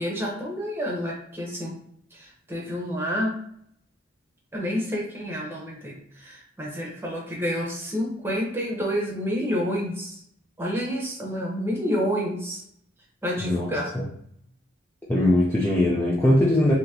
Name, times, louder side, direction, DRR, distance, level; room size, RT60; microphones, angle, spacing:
voice 1, 0.0-1.8 2.1-3.3 4.5-10.2 10.6-12.6 13.2-13.9, equal, 10° right, -2 dB, 0.9 m, -29 dB
voice 2, 15.1-16.7, left 1 dB, 10° left, -5 dB, 0.4 m, -20 dB
3.6 x 2.9 x 2.8 m, 0.70 s
head